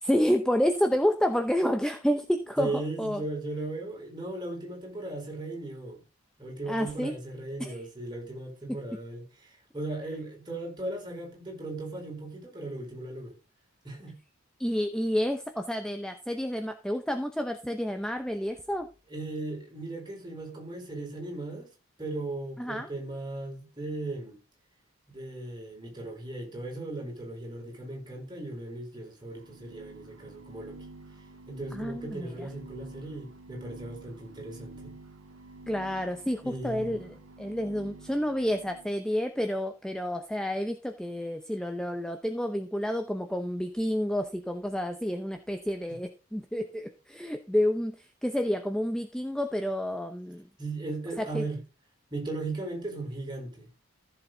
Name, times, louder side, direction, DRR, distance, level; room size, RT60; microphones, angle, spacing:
voice 1, 0.0-3.2 6.7-7.1 7.6-7.8 14.6-18.9 22.6-22.9 31.7-32.5 35.7-50.4 51.2-51.4, equal, 5° left, 0.7 m, -29 dB
voice 2, 2.6-6.0 6.4-13.3 13.8-14.2 19.1-21.7 22.0-24.4 25.1-30.8 31.5-34.9 36.4-36.9 50.6-51.6 52.1-53.7, right 2 dB, 20° right, 4.4 m, -37 dB
sound 1, 29.3-39.0, right 2 dB, 75° right, 1.5 m, -49 dB
14.5 x 7.1 x 3.9 m
head